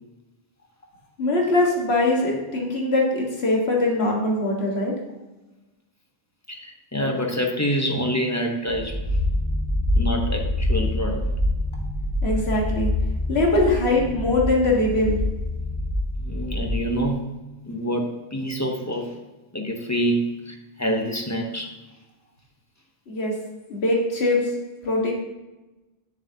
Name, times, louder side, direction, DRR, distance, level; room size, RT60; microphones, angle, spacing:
voice 1, 1.2-4.9 12.2-12.9 13.3-15.2 23.1-23.4 23.7-24.5 24.8-25.1, left 2 dB, 80° left, -1 dB, 1.7 m, -22 dB
voice 2, 6.5-9.0 10.0-11.2 16.2-17.3 17.7-19.1 19.5-21.7, equal, 15° left, 2 dB, 0.8 m, -26 dB
sound 1, 8.7-17.1, left 1 dB, 75° right, 1.5 m, -26 dB
8.8 x 7.1 x 2.7 m, 1.1 s
omnidirectional pair, 1.1 m